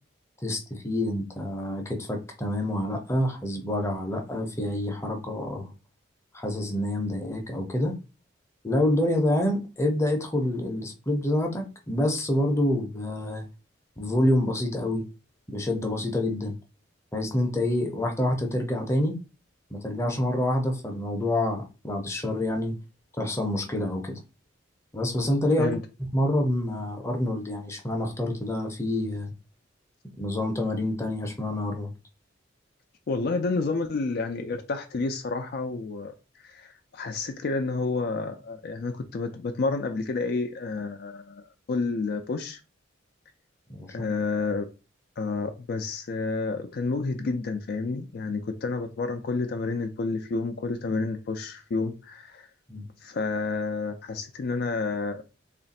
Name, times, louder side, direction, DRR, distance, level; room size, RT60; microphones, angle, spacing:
voice 1, 0.4-5.7 6.3-8.0 8.6-13.5 14.0-15.0 15.5-16.6 17.1-19.2 19.7-22.7 23.2-24.2 24.9-25.7 26.0-29.3 30.2-31.9 43.7-44.1 52.7-52.9, left 1 dB, 15° left, 0.6 m, -27 dB
voice 2, 33.1-41.4 41.7-42.6 43.9-44.7 45.2-52.5 53.0-55.2, left 3 dB, 55° left, 0.4 m, -30 dB
3.2 x 2.5 x 4.0 m
head